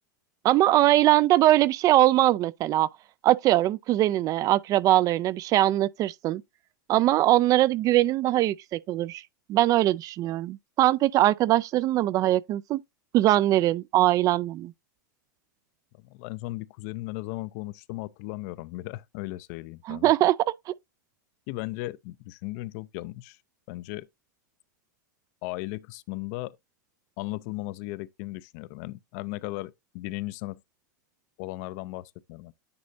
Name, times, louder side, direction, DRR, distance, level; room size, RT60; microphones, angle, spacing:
voice 1, 0.4-2.9 3.2-6.4 6.9-9.2 9.5-12.8 13.1-14.7 19.9-20.7, right 14 dB, 35° right, 0.3 m, -22 dB
voice 2, 16.0-20.1 21.5-23.4 23.7-24.1 25.4-26.6 27.2-30.6 31.4-32.5, left 19 dB, 50° left, 0.5 m, -36 dB
9.6 x 4.9 x 2.7 m
hypercardioid pair, 105°, 10 cm